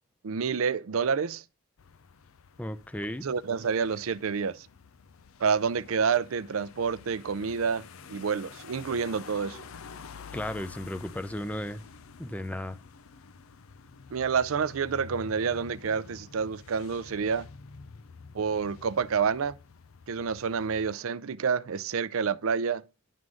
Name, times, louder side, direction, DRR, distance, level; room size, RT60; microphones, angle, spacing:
voice 1, 0.2-1.4 3.2-4.7 5.4-7.8 8.1-9.6 14.1-17.5 18.3-19.5 20.1-22.8, right 6 dB, 85° right, 0.5 m, -28 dB
sound 1, 1.8-21.0, left 5 dB, 90° left, 0.6 m, -49 dB
voice 2, 2.6-3.3 10.3-11.8 12.2-12.8, left 1 dB, 5° left, 0.5 m, -35 dB
11.0 x 3.8 x 6.2 m
head